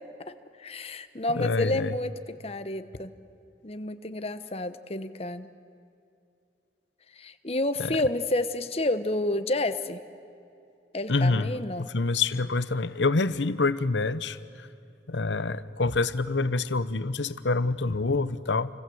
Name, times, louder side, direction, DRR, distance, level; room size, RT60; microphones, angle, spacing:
voice 1, 0.6-3.1 3.6-5.5 7.1-10.0 10.9-11.9, left 1 dB, 35° left, 11 dB, 1.1 m, -30 dB
voice 2, 1.4-1.9 7.8-8.0 11.1-14.4 15.1-18.7, left 3 dB, 85° left, 15 dB, 0.9 m, -26 dB
29.5 x 25.0 x 7.9 m, 2.6 s
head